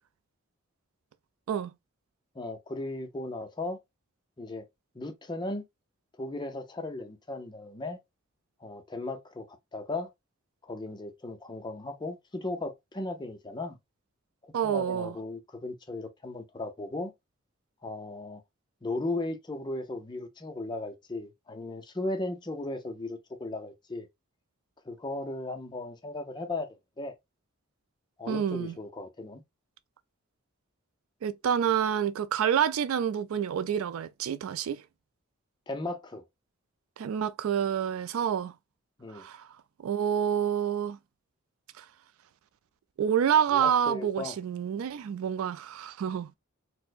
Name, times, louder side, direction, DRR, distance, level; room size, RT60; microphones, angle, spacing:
voice 1, 2.4-3.8 4.4-4.7 4.9-5.6 6.2-8.0 8.6-10.1 10.6-13.8 14.4-17.1 17.8-18.4 18.8-24.1 24.9-26.7 27.0-27.1 28.2-29.4 35.7-36.2 39.0-39.2 43.5-44.4, left 2 dB, 20° left, 0.5 m, -36 dB
voice 2, 14.5-15.1 28.3-28.7 31.2-34.8 37.0-38.5 39.1-39.5 39.8-41.0 41.8-41.9 43.0-46.3, right 8 dB, 80° right, 0.3 m, -28 dB
4.3 x 2.0 x 2.5 m
head